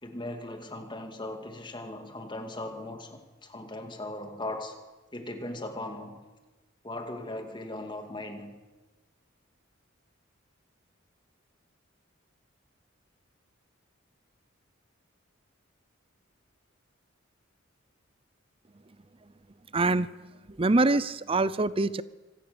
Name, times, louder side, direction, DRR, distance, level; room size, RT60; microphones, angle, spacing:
voice 1, 0.0-4.8 5.1-6.2 6.8-8.6, left 1 dB, 25° left, 5 dB, 2.4 m, -38 dB
voice 2, 19.7-20.1 20.5-22.0, right 2 dB, 25° right, 16 dB, 0.7 m, -24 dB
25.0 x 17.5 x 7.0 m, 1.2 s
head